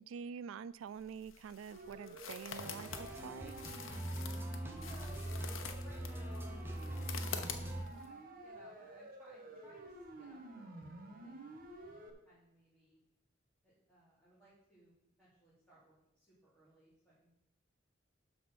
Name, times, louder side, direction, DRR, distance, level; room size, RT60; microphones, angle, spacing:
voice 1, 0.0-3.5, right 7 dB, 85° right, 18 dB, 0.3 m, -47 dB
sound 1, 0.9-8.1, left 7 dB, 85° left, 1.0 m, -47 dB
Siren, 1.7-12.1, right 2 dB, 45° right, 1.3 m, -52 dB
sound 2, 2.6-7.8, right 1 dB, 10° right, 1.0 m, -42 dB
voice 2, 4.8-7.3 7.8-13.0 13.6-17.3, right 1 dB, 5° left, -10 dB, 3.0 m, -64 dB
11.5 x 4.2 x 6.2 m, 0.83 s
head